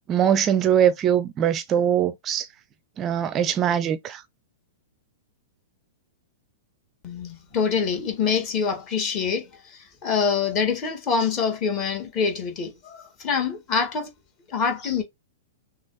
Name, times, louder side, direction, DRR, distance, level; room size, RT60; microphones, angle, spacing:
voice 1, 0.1-2.5 3.0-4.2, right 9 dB, 25° right, 0.4 m, -22 dB
voice 2, 7.0-14.1 14.5-15.0, left 6 dB, 30° left, 1.8 m, -25 dB
6.0 x 2.4 x 2.6 m
figure-of-eight pair, 105°, 0 cm